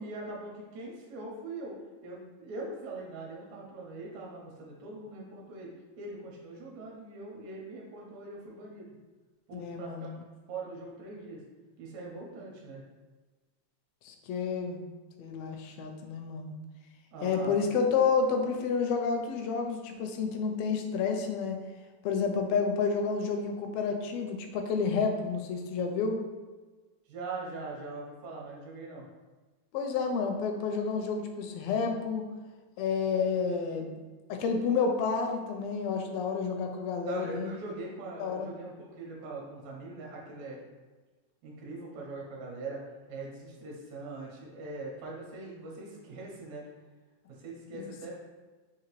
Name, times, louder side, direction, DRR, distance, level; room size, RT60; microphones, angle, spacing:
voice 1, 0.0-1.8 2.0-5.7 6.0-9.0 9.5-10.1 10.5-11.4 11.8-12.8 17.1-17.6 27.1-29.1 37.1-40.6 41.4-42.8 43.1-46.6 47.4-48.1, right 3 dB, 75° right, -3 dB, 2.0 m, -41 dB
voice 2, 9.5-10.2 14.0-14.9 15.2-16.5 17.2-21.6 22.0-26.2 29.7-32.2 32.8-34.0 34.3-37.5 38.2-38.5 47.8-47.9, left 5 dB, 80° left, 4 dB, 1.5 m, -30 dB
4.9 x 2.8 x 3.0 m, 1.3 s
omnidirectional pair, 3.3 m